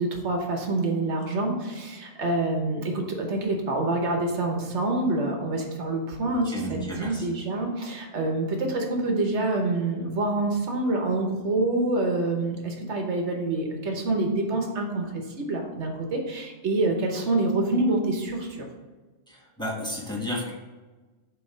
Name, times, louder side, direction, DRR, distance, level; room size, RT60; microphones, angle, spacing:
voice 1, 0.0-15.1 15.4-18.6, right 2 dB, 75° right, 2 dB, 1.3 m, -26 dB
voice 2, 6.3-7.2 19.3-20.5, left 1 dB, 5° left, -5 dB, 1.4 m, -33 dB
7.7 x 3.1 x 5.0 m, 1.3 s
omnidirectional pair, 1.2 m